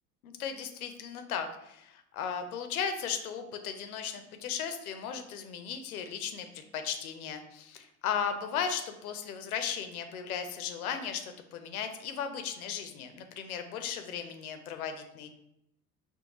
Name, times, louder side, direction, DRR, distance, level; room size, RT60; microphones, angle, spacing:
voice 1, 0.2-15.3, left 7 dB, 85° left, 7 dB, 0.5 m, -36 dB
4.3 x 2.1 x 2.9 m, 0.82 s
hypercardioid pair, 65°, 43 cm